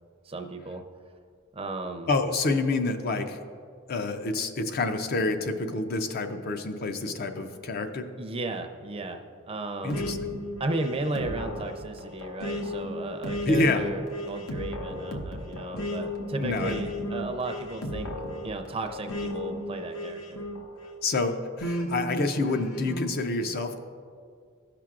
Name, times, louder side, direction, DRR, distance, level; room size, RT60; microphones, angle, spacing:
voice 1, 0.2-0.8 1.5-2.1 8.2-10.3 10.6-18.1 18.4-20.5, right 2 dB, 30° right, 5 dB, 0.5 m, -35 dB
voice 2, 2.1-3.4 3.9-8.1 9.8-10.3 13.5-13.9 16.4-16.8 21.0-23.8, left 3 dB, 50° left, 7 dB, 0.5 m, -28 dB
sound 1, 9.9-21.0 21.6-23.1, left 1 dB, 85° left, 0.8 m, -34 dB
14.5 x 5.9 x 2.4 m, 2.1 s
head